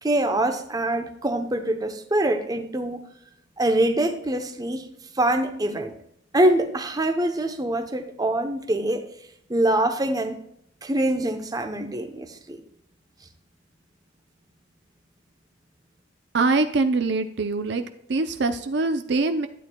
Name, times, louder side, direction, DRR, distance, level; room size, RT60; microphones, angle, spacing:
voice 1, 0.0-3.0 3.6-4.9 5.1-5.9 6.3-9.0 9.5-10.4 10.8-12.6, right 1 dB, 20° right, 7 dB, 0.8 m, -24 dB
voice 2, 16.3-17.8 18.1-19.5, right 3 dB, 60° right, 8 dB, 0.6 m, -23 dB
12.5 x 8.7 x 2.3 m, 0.72 s
head